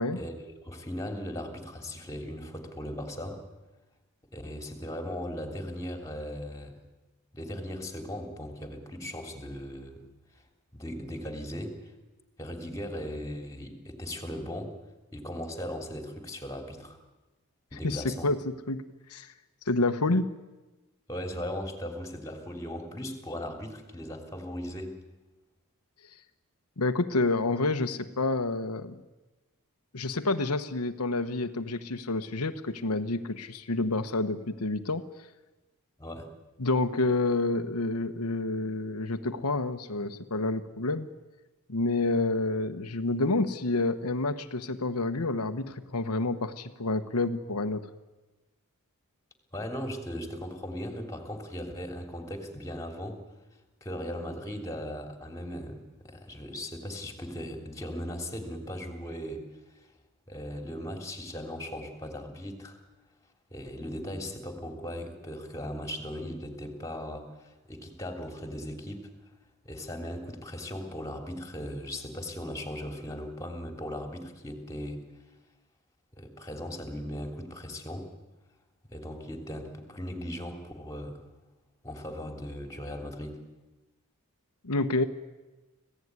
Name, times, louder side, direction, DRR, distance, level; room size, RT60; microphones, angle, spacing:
voice 1, 0.1-3.4 4.3-6.7 7.3-10.0 10.7-11.8 12.4-14.8 15.1-17.0 17.7-18.3 21.1-24.9 36.0-36.3 49.5-53.2 53.8-59.4 59.8-59.9 60.3-62.8 63.5-69.1 69.7-75.0 76.1-78.1 78.9-81.2 81.8-83.4, equal, 15° left, 4 dB, 3.4 m, -38 dB
voice 2, 17.7-18.8 19.1-19.3 19.7-20.3 26.8-29.0 29.9-35.1 36.6-41.1 41.7-47.9 84.6-85.1, left 2 dB, 85° left, 7 dB, 1.2 m, -29 dB
25.5 x 17.0 x 9.7 m, 1.1 s
head